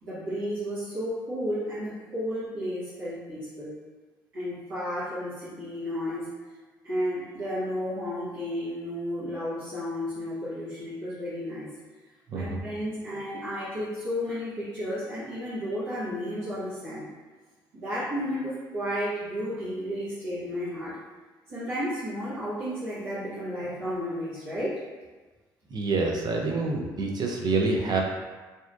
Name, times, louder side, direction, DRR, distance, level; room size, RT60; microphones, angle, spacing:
voice 1, 0.0-3.7 4.3-6.3 6.8-11.7 12.3-17.1 17.7-21.0 21.5-24.8, equal, 80° right, -14 dB, 1.1 m, -32 dB
voice 2, 25.7-28.0, right 3 dB, 40° right, 0 dB, 0.5 m, -27 dB
2.7 x 2.1 x 2.4 m, 1.3 s
hypercardioid pair, 50°, 10 cm